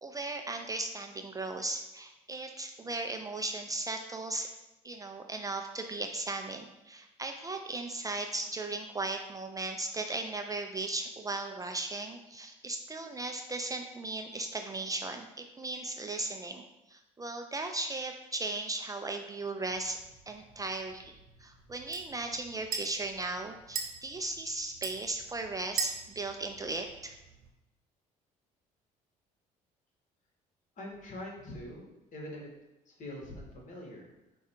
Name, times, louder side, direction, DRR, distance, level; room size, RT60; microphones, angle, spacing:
voice 1, 0.0-4.5 4.8-20.0 20.3-27.2, right 2 dB, 20° right, 5 dB, 0.4 m, -37 dB
sound 1, 19.7-27.5, right 6 dB, 60° right, 0.8 m, -42 dB
voice 2, 30.8-32.5 32.9-34.1, left 1 dB, 50° left, -1 dB, 1.5 m, -44 dB
4.7 x 2.3 x 4.4 m, 0.96 s
supercardioid pair, 75°, 16 cm